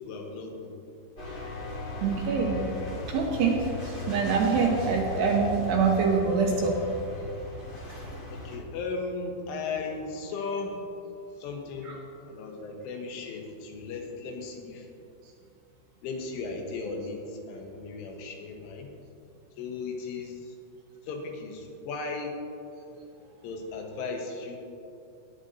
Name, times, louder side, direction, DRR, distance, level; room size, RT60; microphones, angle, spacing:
voice 1, 0.1-0.8 8.3-10.9 11.4-14.9 16.0-19.0 19.6-20.6 21.0-22.4 23.4-24.6, left 4 dB, 80° left, 2 dB, 3.7 m, -36 dB
sound 1, 1.2-8.6, left 1 dB, 35° left, 1.6 m, -37 dB
voice 2, 2.0-2.6 3.1-3.6 3.8-6.8, right 5 dB, 75° right, 0 dB, 2.6 m, -25 dB
20.5 x 10.5 x 2.7 m, 2.7 s
omnidirectional pair, 5.7 m